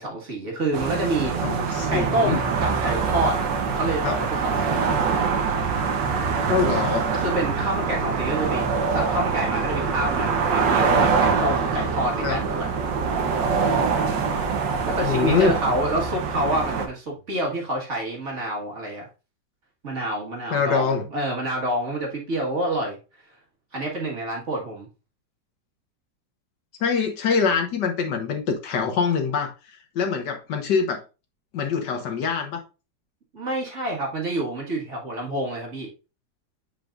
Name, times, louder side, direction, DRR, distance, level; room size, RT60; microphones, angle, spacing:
voice 1, 0.0-1.3 1.9-3.4 3.7-4.9 7.1-12.7 14.9-19.1 19.8-23.0 23.7-24.9 33.3-35.9, right 1 dB, 45° right, 2.0 m, -27 dB
sound 1, 0.7-16.9, right 5 dB, 85° right, 1.7 m, -24 dB
voice 2, 1.4-2.4 4.0-4.2 6.5-7.1 12.2-12.4 15.0-15.6 20.5-21.0 26.8-31.0 31.5-32.6, left 6 dB, 75° left, 1.7 m, -24 dB
7.5 x 5.3 x 2.5 m
omnidirectional pair, 1.9 m